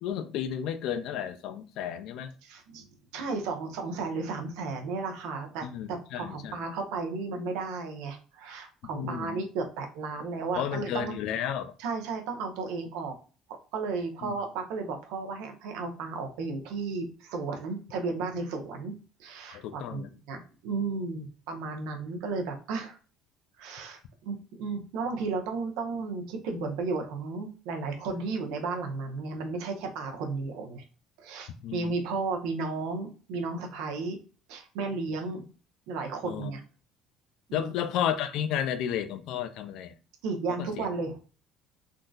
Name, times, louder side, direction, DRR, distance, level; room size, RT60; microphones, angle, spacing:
voice 1, 0.0-2.3 5.6-6.5 8.9-9.5 10.5-11.7 14.2-14.4 19.5-20.1 31.6-32.2 36.2-36.5 37.5-39.9 40.6-40.9, left 9 dB, 55° left, 0.4 m, -32 dB
voice 2, 2.4-2.8 3.1-11.2 11.8-13.1 13.7-18.9 19.2-20.0 20.3-23.0 23.6-30.8 31.2-34.2 34.5-35.4 35.9-36.6 37.5-37.7 40.2-41.2, right 4 dB, 90° right, 0.8 m, -34 dB
3.6 x 2.6 x 2.3 m
cardioid pair, 175°, 0 cm